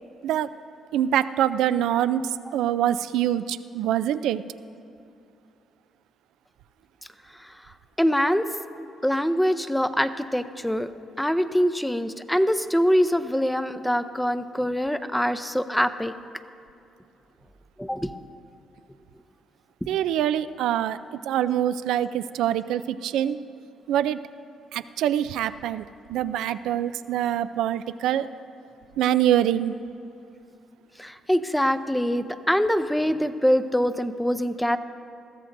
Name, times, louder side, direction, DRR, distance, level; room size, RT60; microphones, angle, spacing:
voice 1, 0.9-4.4 19.9-21.0 21.3-23.4 23.9-24.2 24.7-25.8 26.1-28.3 29.0-29.8, right 11 dB, 85° right, 14 dB, 0.4 m, -24 dB
voice 2, 8.0-8.5 9.0-10.9 11.2-16.1 17.8-18.1 31.0-34.8, equal, 5° left, 11 dB, 0.6 m, -24 dB
21.5 x 14.5 x 2.6 m, 2.7 s
cardioid pair, 90°, 0 cm